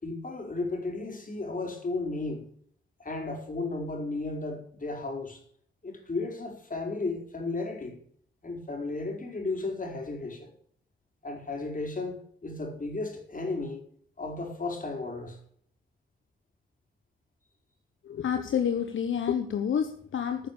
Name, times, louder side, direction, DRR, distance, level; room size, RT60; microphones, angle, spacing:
voice 1, 0.0-2.5 3.0-5.4 5.8-8.0 8.4-10.5 11.2-13.8 14.2-15.4, left 3 dB, 40° left, 5.0 m, -34 dB
voice 2, 18.0-20.5, left 8 dB, 75° left, 1.3 m, -29 dB
14.5 x 6.8 x 6.9 m
supercardioid pair, 50°, 20 cm